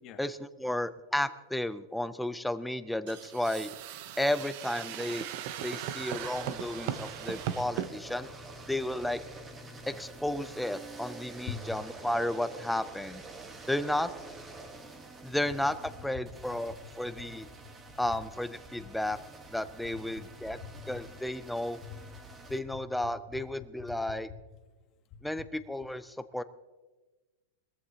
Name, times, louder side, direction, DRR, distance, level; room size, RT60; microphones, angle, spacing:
voice 1, 0.2-3.7 4.2-5.3 5.6-8.3 8.7-9.2 9.9-13.2 13.7-14.1 15.2-17.5 18.0-19.2 19.5-20.6 20.9-21.8 22.5-24.3 25.2-26.4, left 1 dB, ahead, 12 dB, 0.4 m, -33 dB
sound 1, 3.1-7.9, right 11 dB, 45° right, 0.8 m, -38 dB
sound 2, 6.1-22.6, right 3 dB, 15° right, 1.3 m, -47 dB
voice 2, 20.5-21.1 21.8-22.6 23.0-23.4 23.9-24.0, left 8 dB, 30° left, 6 dB, 1.4 m, -44 dB
21.5 x 14.5 x 2.9 m, 1.2 s
supercardioid pair, 165°, 0 cm